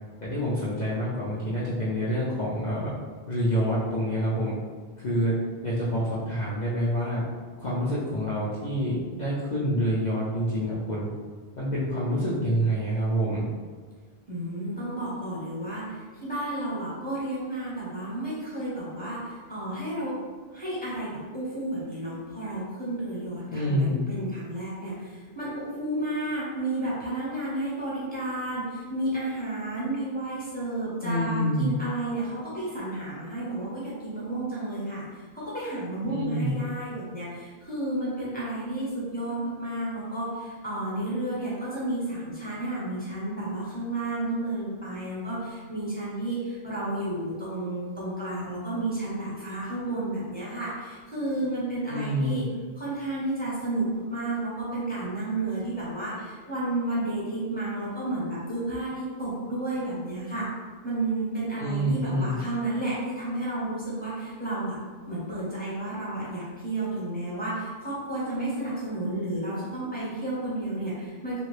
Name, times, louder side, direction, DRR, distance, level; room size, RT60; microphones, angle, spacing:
voice 1, 0.2-2.9 3.3-4.5 5.0-5.4 5.6-7.2 7.6-11.1 11.6-13.4 23.5-24.0 31.0-31.7 36.0-36.5 51.9-52.4 61.5-62.3, equal, 50° left, -9 dB, 0.6 m, -27 dB
voice 2, 14.3-20.1 20.5-52.5 52.8-60.5 60.8-64.8 65.1-71.4, right 2 dB, 10° left, -8 dB, 0.9 m, -32 dB
2.8 x 2.5 x 3.2 m, 1.5 s
omnidirectional pair, 1.1 m